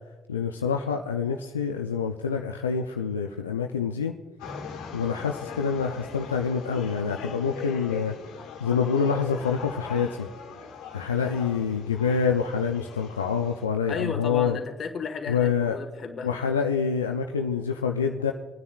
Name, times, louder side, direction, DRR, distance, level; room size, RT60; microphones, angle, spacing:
voice 1, 0.3-4.1 4.9-8.1 8.6-10.3 10.9-14.6 15.3-15.8 16.2-18.3, left 6 dB, 90° left, 3 dB, 0.5 m, -26 dB
sound 1, 4.4-13.6, left 6 dB, 65° left, 1.8 m, -40 dB
voice 2, 13.9-16.4, left 5 dB, 45° left, 6 dB, 1.5 m, -34 dB
28.5 x 9.7 x 2.4 m, 1.3 s
hypercardioid pair, 55°, 0 cm